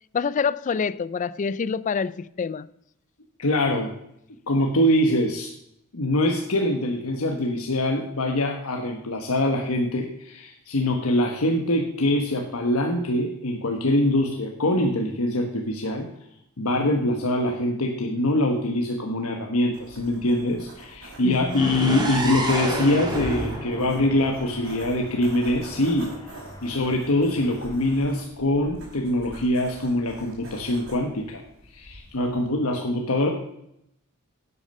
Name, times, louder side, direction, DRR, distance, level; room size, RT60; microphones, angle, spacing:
voice 1, 0.1-2.7 21.2-21.7, left 5 dB, 35° left, 0.3 m, -27 dB
voice 2, 3.4-3.9 4.5-5.5 5.9-16.1 16.6-26.1 26.6-31.4 31.7-33.3, left 1 dB, 80° left, 1.1 m, -24 dB
sound 1, 19.7-32.5, right 1 dB, 65° right, 4.6 m, -45 dB
sound 2, 21.5-25.4, right 1 dB, 20° right, 1.6 m, -30 dB
sound 3, 21.8-28.0, left 1 dB, 20° left, 1.3 m, -45 dB
10.5 x 8.4 x 5.4 m
head